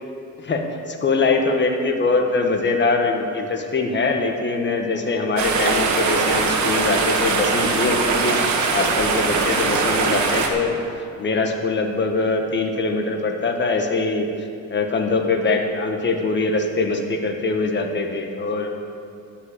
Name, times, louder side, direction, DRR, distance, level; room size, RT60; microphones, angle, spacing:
voice 1, 0.4-10.8 11.2-14.3 14.7-18.7, left 3 dB, 35° left, 3 dB, 1.5 m, -22 dB
sound 1, 5.4-10.5, right 4 dB, 70° right, 1.4 m, -21 dB
12.0 x 5.7 x 8.4 m, 2.5 s
cardioid pair, 90°, 30 cm